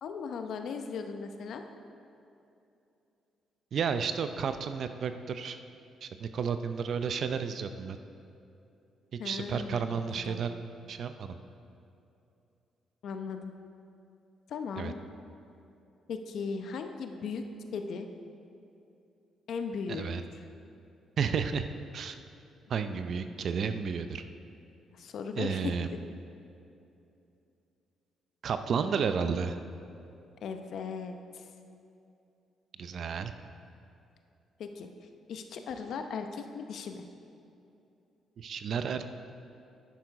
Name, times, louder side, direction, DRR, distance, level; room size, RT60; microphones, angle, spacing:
voice 1, 0.0-1.6 9.2-10.4 13.0-13.5 14.5-15.0 16.1-17.4 17.7-18.1 19.5-20.5 24.9-25.7 30.4-31.5 34.6-34.9 35.3-37.0, left 5 dB, 70° left, 6 dB, 0.8 m, -37 dB
voice 2, 3.7-5.6 6.0-8.0 9.1-10.5 10.9-11.4 14.8-14.9 19.9-20.2 21.2-21.7 21.9-22.2 22.7-24.2 25.4-25.9 28.4-29.6 32.8-33.3 38.4-39.0, right 6 dB, 60° right, 9 dB, 0.5 m, -32 dB
10.0 x 7.0 x 4.8 m, 2.7 s
cardioid pair, 90°, 0 cm